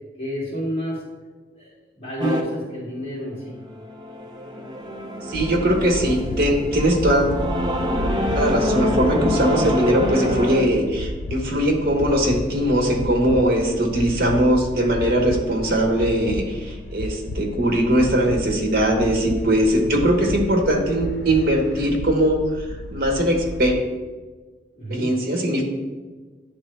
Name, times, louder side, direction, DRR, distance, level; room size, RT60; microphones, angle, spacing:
voice 1, 0.2-1.0 1.5-1.7 2.0-3.6 6.6-6.7 24.7-25.1, equal, 35° left, -8 dB, 2.0 m, -29 dB
sound 1, 2.2-2.4 3.5-10.6, equal, 25° right, 0.5 m, -26 dB
sound 2, 5.3-23.8, left 1 dB, 75° left, 0.4 m, -32 dB
voice 2, 5.3-7.4 8.4-22.6 22.9-23.8 24.9-25.6, right 1 dB, 55° right, 1 dB, 1.0 m, -20 dB
9.6 x 3.4 x 3.3 m, 1.3 s
head